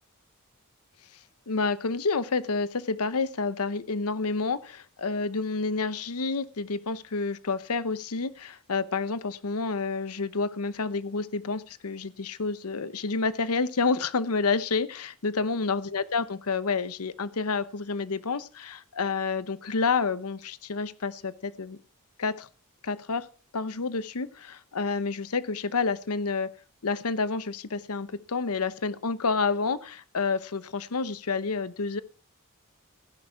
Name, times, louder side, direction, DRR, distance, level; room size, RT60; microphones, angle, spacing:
voice 1, 1.5-21.8 22.2-22.5 22.8-23.3 23.5-26.5 26.8-32.0, left 4 dB, 85° left, 15 dB, 0.9 m, -29 dB
15.5 x 10.5 x 4.6 m, 0.36 s
head